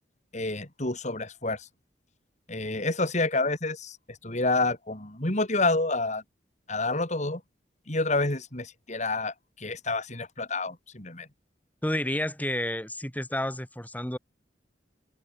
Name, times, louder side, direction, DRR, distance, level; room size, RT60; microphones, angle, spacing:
voice 1, 0.3-1.7 2.5-6.2 6.7-7.4 7.9-11.3, left 2 dB, 40° left, 4.2 m, -28 dB
voice 2, 11.8-14.2, left 1 dB, 10° left, 6.4 m, -30 dB
head